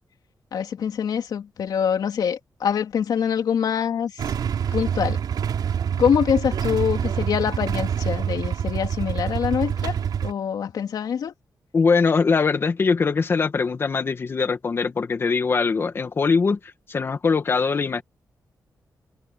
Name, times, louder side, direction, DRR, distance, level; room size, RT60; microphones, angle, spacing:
voice 1, 0.5-4.2 4.7-5.2 6.0-11.3, left 8 dB, 75° left, 2.7 m, -24 dB
Motorcycle / Engine starting / Idling, 4.2-10.3, right 8 dB, 90° right, 3.8 m, -26 dB
voice 2, 11.7-18.0, left 5 dB, 35° left, 2.0 m, -22 dB
wide cardioid pair, 180°, 7 cm